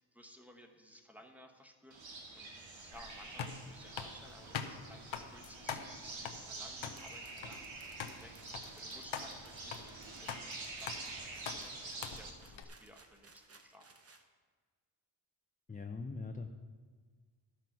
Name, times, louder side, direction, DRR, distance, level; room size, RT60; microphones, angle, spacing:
voice 1, 0.0-2.5 2.8-7.7 8.2-13.9, equal, 5° right, 4 dB, 1.0 m, -58 dB
sound 1, 1.9-12.3, right 3 dB, 80° right, 1.8 m, -47 dB
sound 2, 2.9-12.6, left 7 dB, 90° left, 0.9 m, -45 dB
sound 3, 7.0-14.3, right 3 dB, 30° right, 0.9 m, -61 dB
voice 2, 15.7-16.5, left 4 dB, 20° left, 4 dB, 0.5 m, -41 dB
12.5 x 6.1 x 5.9 m, 1.5 s
wide cardioid pair, 130°, 45 cm